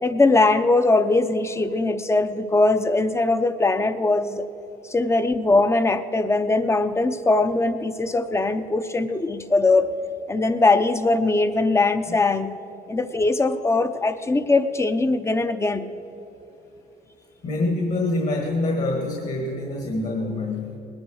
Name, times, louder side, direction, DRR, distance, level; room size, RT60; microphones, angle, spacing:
voice 1, 0.0-4.5 4.8-9.9 10.3-12.5 12.9-15.9, left 2 dB, 15° left, 11 dB, 0.7 m, -21 dB
voice 2, 17.4-20.8, left 2 dB, 45° left, 2 dB, 1.7 m, -25 dB
19.5 x 9.7 x 6.3 m, 2.9 s
cardioid pair, 110°, 17 cm